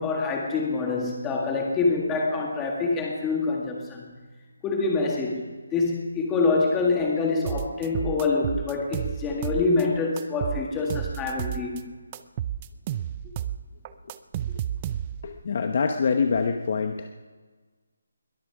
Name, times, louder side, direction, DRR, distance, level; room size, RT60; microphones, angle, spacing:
voice 1, 0.0-4.1 4.6-5.5 5.7-11.9, left 3 dB, 10° left, 0 dB, 2.0 m, -26 dB
sound 1, 7.5-9.8 10.2-11.8 12.1-15.3, right 11 dB, 20° right, 0.4 m, -31 dB
voice 2, 15.2-17.3, left 5 dB, 35° left, 6 dB, 1.0 m, -25 dB
21.5 x 13.5 x 4.9 m, 1.4 s
hypercardioid pair, 175°, 0 cm